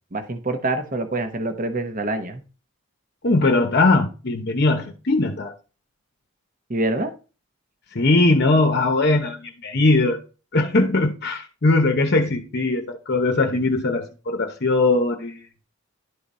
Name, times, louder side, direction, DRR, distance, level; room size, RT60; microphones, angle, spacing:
voice 1, 0.1-2.4 6.7-7.1, right 2 dB, 40° right, 0.9 m, -25 dB
voice 2, 3.2-5.5 7.9-10.2 10.5-15.4, left 2 dB, 50° left, 0.8 m, -20 dB
11.0 x 3.8 x 4.1 m
head